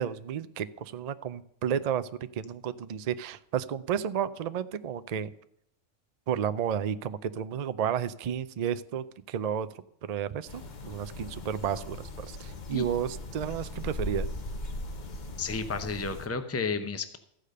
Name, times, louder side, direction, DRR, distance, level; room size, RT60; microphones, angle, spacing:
voice 1, 0.0-2.1 2.4-5.3 6.3-9.7 10.1-14.3, right 9 dB, 65° right, 13 dB, 0.4 m, -32 dB
sound 1, 10.5-16.3, left 2 dB, 40° left, 0.9 m, -39 dB
voice 2, 15.4-17.2, left 4 dB, 15° left, 9 dB, 0.6 m, -32 dB
14.5 x 5.0 x 6.6 m, 0.72 s
omnidirectional pair, 1.3 m